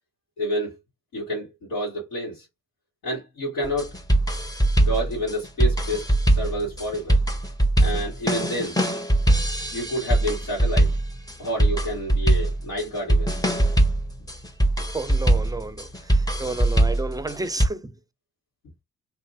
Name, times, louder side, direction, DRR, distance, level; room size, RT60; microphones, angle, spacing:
voice 1, 0.4-0.8 1.1-2.5 3.0-3.9 4.8-7.2 7.8-8.8 9.7-11.0 11.4-13.3 16.4-16.6, equal, 80° left, 2.2 m, -29 dB
sound 1, 3.6-17.7, right 1 dB, 10° left, 1.0 m, -22 dB
voice 2, 14.9-18.0, right 3 dB, 10° right, 0.5 m, -32 dB
3.3 x 3.0 x 2.7 m
hypercardioid pair, 45°, 32 cm